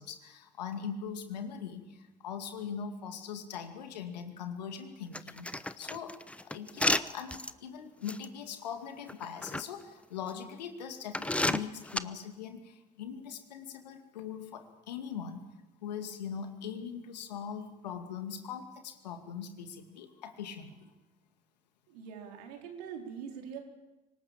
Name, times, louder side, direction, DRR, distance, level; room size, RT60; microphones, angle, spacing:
voice 1, 0.0-5.5 5.8-15.5 15.8-20.9, left 7 dB, 85° left, 7 dB, 2.3 m, -41 dB
sound 1, 5.1-7.5 8.1-8.2 9.1-9.6 10.3-10.4 11.1-12.0, left 1 dB, 5° left, 1.0 m, -31 dB
voice 2, 21.9-23.6, right 7 dB, 75° right, 3 dB, 4.1 m, -43 dB
25.5 x 19.0 x 7.5 m, 1.0 s
hypercardioid pair, 65°, 21 cm